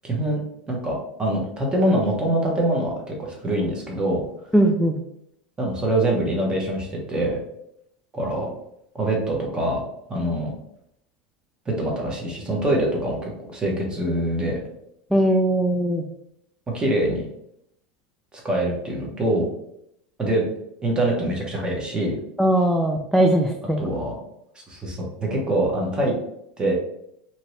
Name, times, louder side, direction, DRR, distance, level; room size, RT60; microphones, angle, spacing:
voice 1, 0.0-0.4 0.7-4.2 5.6-7.4 8.1-8.5 8.9-9.8 10.1-10.5 11.8-14.6 16.7-17.3 18.4-19.5 20.2-20.4 20.8-22.1 23.8-24.2 24.7-26.1 26.6-26.7, right 1 dB, 20° right, -1 dB, 1.0 m, -24 dB
voice 2, 4.5-5.0 15.1-16.0 22.4-23.8, right 1 dB, ahead, 1 dB, 0.3 m, -19 dB
2.8 x 2.6 x 3.1 m, 0.76 s
supercardioid pair, 110°, 5 cm